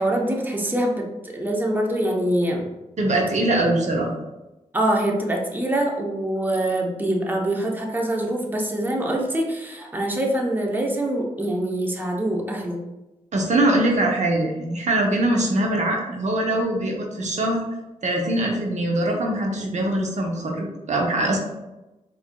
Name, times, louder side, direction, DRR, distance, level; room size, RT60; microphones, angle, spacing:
voice 1, 0.0-2.6 4.7-12.8, right 1 dB, 15° right, 0 dB, 0.7 m, -24 dB
voice 2, 3.0-4.1 13.3-17.6 18.0-21.4, right 1 dB, 60° right, 0 dB, 0.7 m, -22 dB
4.6 x 2.6 x 2.2 m, 1.0 s
cardioid pair, 50°, 14 cm